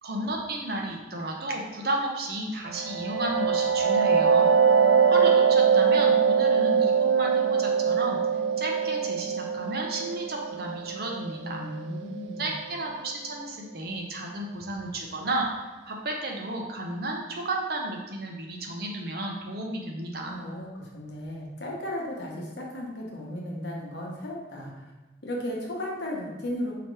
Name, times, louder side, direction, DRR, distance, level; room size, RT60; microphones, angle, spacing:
voice 1, 0.0-4.5 5.1-8.2 8.6-11.6 12.4-15.5 15.9-20.4, right 1 dB, 55° right, 0 dB, 0.7 m, -32 dB
sound 1, 2.7-12.2, right 6 dB, 80° right, 0.3 m, -23 dB
voice 2, 11.4-12.5 20.2-24.8 25.2-26.7, left 1 dB, 70° left, -2 dB, 1.0 m, -35 dB
5.0 x 2.9 x 3.2 m, 1.1 s
head